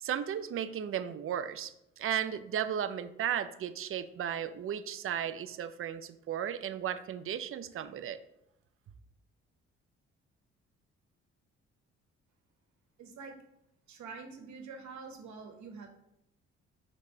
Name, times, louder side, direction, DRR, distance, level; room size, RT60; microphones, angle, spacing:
voice 1, 0.0-8.2, right 9 dB, 45° right, 12 dB, 0.6 m, -35 dB
voice 2, 13.0-13.4 13.9-15.9, right 4 dB, 70° right, 4 dB, 1.4 m, -46 dB
5.2 x 4.1 x 5.2 m, 0.81 s
supercardioid pair, 60°, 30 cm